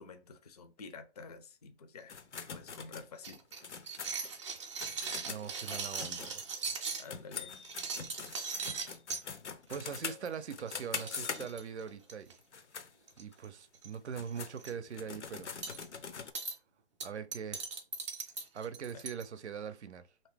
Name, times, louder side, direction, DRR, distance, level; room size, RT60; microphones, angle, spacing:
voice 1, 0.0-2.2 2.5-3.4 4.0-4.1 7.0-7.5 18.9-19.0, left 4 dB, 35° left, 0.4 m, -49 dB
sound 1, 2.1-6.8 7.1-11.8 12.4-12.9 13.3-13.4 13.9-16.3, left 6 dB, 85° left, 0.6 m, -43 dB
sound 2, 3.2-7.1 7.6-9.2 9.7-10.0 10.2-10.4 10.7-10.8 10.9-12.3 13.1-13.4 13.7-13.9 14.3-14.7 15.6-15.8 16.3-16.5 17.0-19.2, right 5 dB, 25° right, 0.5 m, -39 dB
voice 2, 5.2-6.5 9.7-12.4 13.2-15.5 17.0-17.7 18.5-20.1, right 7 dB, 75° right, 0.6 m, -42 dB
2.9 x 2.7 x 3.4 m
hypercardioid pair, 150°, 34 cm